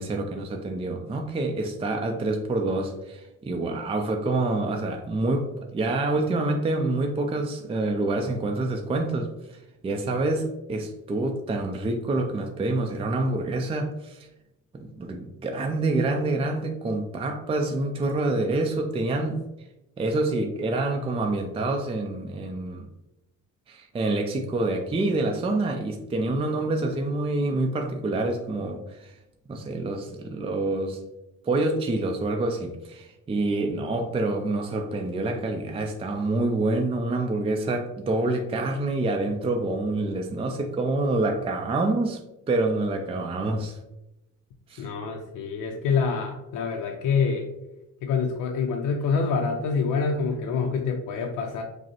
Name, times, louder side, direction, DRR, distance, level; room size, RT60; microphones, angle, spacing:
voice 1, 0.0-14.3 14.8-19.4 20.0-22.9 23.7-29.1 29.5-31.0 31.4-42.2 42.5-43.8 44.7-44.9, right 2 dB, 20° right, 3 dB, 0.4 m, -27 dB
voice 2, 44.8-47.5 48.0-51.6, left 5 dB, 85° left, 2 dB, 0.5 m, -26 dB
4.9 x 2.0 x 2.9 m, 0.93 s
cardioid pair, 90°, 30 cm